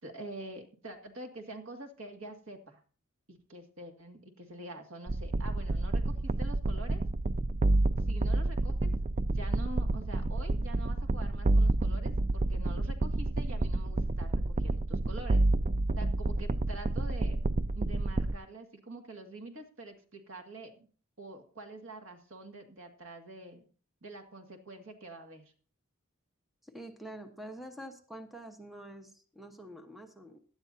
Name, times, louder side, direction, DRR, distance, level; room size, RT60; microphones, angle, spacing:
voice 1, 0.0-2.8 3.3-7.0 8.1-8.9 9.3-15.4 16.0-17.4 17.7-20.9 21.2-23.6 24.0-25.5, right 2 dB, 70° right, 5 dB, 2.1 m, -46 dB
sound 1, 5.1-18.4, right 2 dB, 35° right, 0.4 m, -29 dB
voice 2, 26.6-30.4, right 1 dB, ahead, 5 dB, 1.1 m, -46 dB
17.0 x 11.5 x 2.7 m, 0.40 s
head